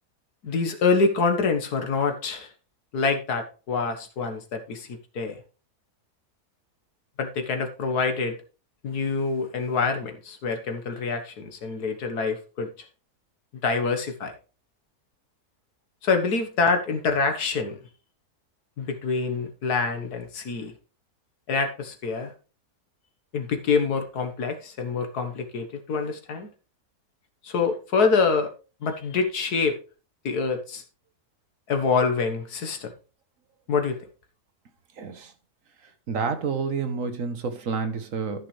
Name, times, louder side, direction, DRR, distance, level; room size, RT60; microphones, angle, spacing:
voice 1, 0.4-2.5 2.9-5.4 7.2-8.4 8.8-12.9 13.6-14.3 16.0-17.8 18.8-20.7 21.5-22.3 23.3-26.5 27.4-28.5 28.8-29.8 30.2-30.8 31.7-32.9 33.7-34.0, left 4 dB, 85° left, 1.9 m, -26 dB
voice 2, 35.0-35.3 36.1-38.5, right 5 dB, 60° right, 1.4 m, -29 dB
13.5 x 6.2 x 3.3 m
omnidirectional pair, 1.6 m